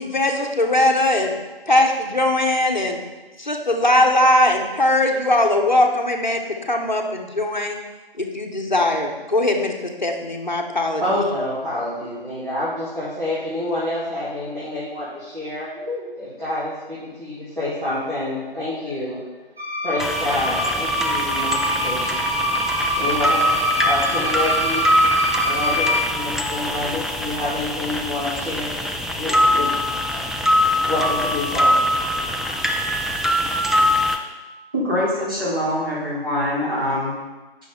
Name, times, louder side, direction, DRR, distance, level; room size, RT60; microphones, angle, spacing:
voice 1, 0.0-1.4 1.7-3.0 3.4-7.8 8.2-11.0, left 1 dB, 50° left, 2 dB, 0.9 m, -20 dB
voice 2, 11.0-19.2 19.8-24.9 25.4-28.7 29.0-29.7 30.1-30.2 30.8-31.8, left 1 dB, 55° right, -12 dB, 2.5 m, -28 dB
sound 1, 19.6-26.0, equal, 85° right, 1.4 m, -24 dB
sound 2, 20.0-34.2, equal, ahead, 0.3 m, -22 dB
voice 3, 34.7-37.1, left 1 dB, 20° right, -10 dB, 2.0 m, -23 dB
7.6 x 6.2 x 3.5 m, 1.2 s
figure-of-eight pair, 170°, 30 cm